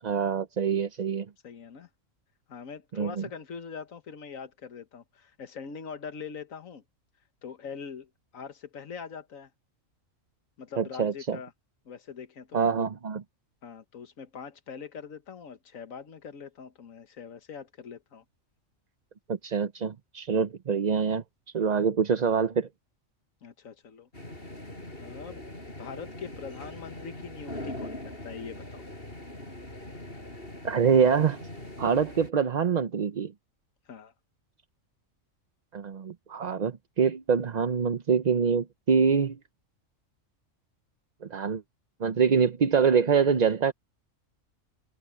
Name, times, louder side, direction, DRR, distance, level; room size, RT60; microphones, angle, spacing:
voice 1, 0.0-1.3 3.0-3.3 10.8-11.4 12.5-13.2 19.3-21.2 21.5-22.7 30.6-31.4 31.8-33.3 35.7-39.4 41.2-41.6 42.0-43.7, right 6 dB, 45° right, 0.6 m, -25 dB
voice 2, 1.4-1.9 2.5-6.8 7.4-9.5 10.6-11.5 11.8-12.7 13.6-18.2 20.3-20.5 23.4-24.1 25.0-25.4 25.8-28.8 33.9-34.1, left 6 dB, 80° left, 1.7 m, -42 dB
sound 1, 24.1-32.3, left 1 dB, 45° left, 5.3 m, -42 dB
omnidirectional pair, 1.4 m